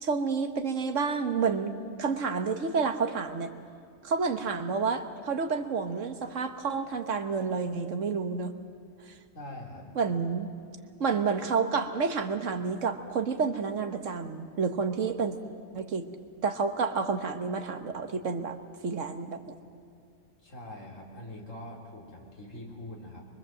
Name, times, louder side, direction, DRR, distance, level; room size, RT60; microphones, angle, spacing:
voice 1, 0.0-1.7 2.0-3.5 4.0-8.5 9.1-9.2 10.0-10.5 11.0-15.4 15.7-16.1 16.4-18.6 18.8-19.5, right 5 dB, 65° right, 8 dB, 1.5 m, -29 dB
voice 2, 9.3-9.9 20.4-23.2, left 1 dB, 70° left, -2 dB, 4.2 m, -43 dB
24.0 x 23.0 x 7.7 m, 2.2 s
omnidirectional pair, 1.4 m